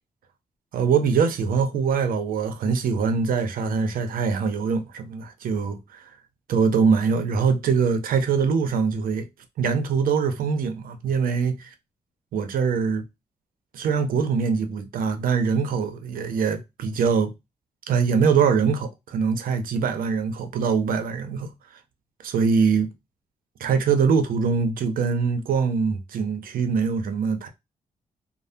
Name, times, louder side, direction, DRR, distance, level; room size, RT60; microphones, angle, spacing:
voice 1, 0.7-6.0 6.5-9.3 9.6-11.7 12.3-13.0 13.7-17.3 17.9-21.5 22.2-22.9 23.6-27.5, right 5 dB, 80° right, 0.6 m, -23 dB
3.3 x 2.0 x 2.6 m
cardioid pair, 70°, 14 cm